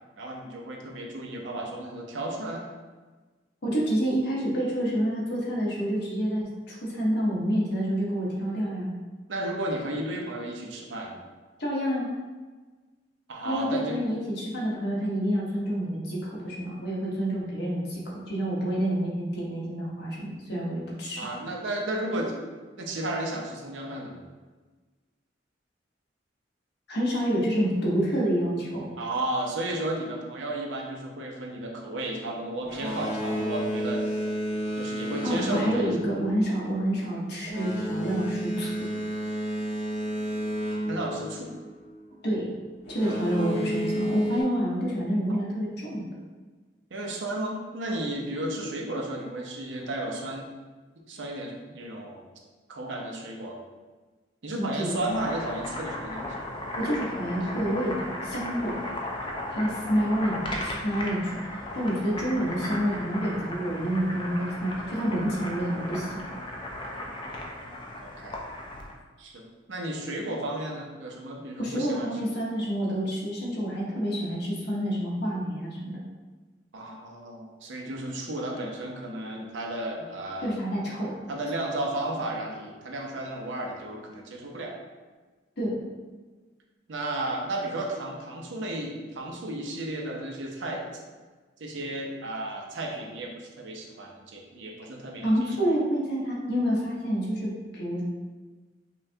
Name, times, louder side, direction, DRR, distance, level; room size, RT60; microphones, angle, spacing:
voice 1, 0.2-2.6 9.3-11.2 13.3-14.0 21.2-22.3 22.8-24.2 29.0-34.0 34.8-36.0 40.9-41.5 43.0-43.6 45.3-45.4 46.9-50.5 51.1-52.2 52.7-53.6 54.4-56.3 67.6-67.7 68.0-68.4 69.2-72.1 76.7-80.6 81.3-84.8 86.9-91.0 91.6-95.5, right 1 dB, 70° right, 0 dB, 0.6 m, -33 dB
voice 2, 3.6-8.9 11.6-12.1 13.4-21.2 26.9-28.9 35.2-38.7 42.2-42.5 42.9-46.0 54.5-55.0 56.8-58.8 59.5-66.4 71.6-75.9 80.4-81.2 85.6-85.8 95.2-98.0, equal, 60° left, -5 dB, 1.1 m, -28 dB
Boat Water vehicle, 32.6-42.0 42.8-44.4, equal, 85° left, 1.3 m, -31 dB
Boiling, 54.9-69.0, left 1 dB, 25° left, 0.5 m, -36 dB
5.4 x 2.3 x 2.7 m, 1.3 s
head